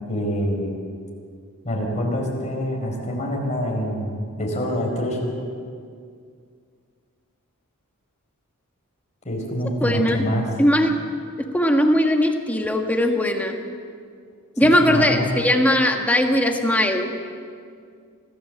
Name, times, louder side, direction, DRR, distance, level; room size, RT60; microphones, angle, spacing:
voice 1, 0.1-0.8 1.6-5.3 9.2-10.5 14.6-15.3, equal, 30° left, 0 dB, 4.5 m, -26 dB
voice 2, 9.8-10.2 10.6-10.9 11.5-13.6 14.6-17.1, left 1 dB, 5° left, 3 dB, 1.4 m, -19 dB
25.0 x 14.0 x 7.7 m, 2.2 s
head